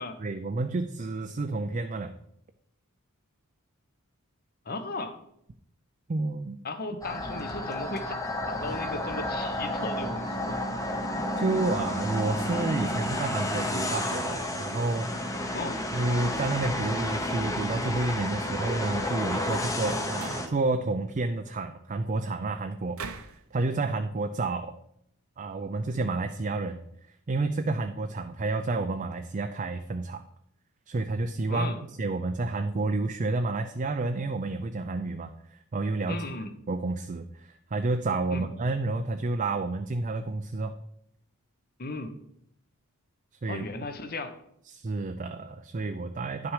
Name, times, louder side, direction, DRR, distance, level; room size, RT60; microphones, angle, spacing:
voice 1, 0.2-2.2 6.1-6.6 11.4-15.1 15.9-24.8 25.4-26.8 27.3-30.2 30.9-31.7 32.0-36.2 36.7-40.8 43.4-43.7 44.7-46.5, right 3 dB, 35° right, 6 dB, 0.4 m, -30 dB
voice 2, 4.7-5.2 6.6-8.1 8.5-10.6 15.5-15.8 31.5-31.8 36.1-36.5 38.3-38.5 41.8-42.1 43.5-44.4, left 2 dB, 45° left, 9 dB, 0.9 m, -36 dB
sound 1, 7.0-20.5, left 1 dB, 15° left, 0.9 m, -31 dB
sound 2, 19.4-19.8 20.1-20.5 22.9-23.4, right 5 dB, 70° right, 0.8 m, -41 dB
10.5 x 6.1 x 4.9 m, 0.74 s
head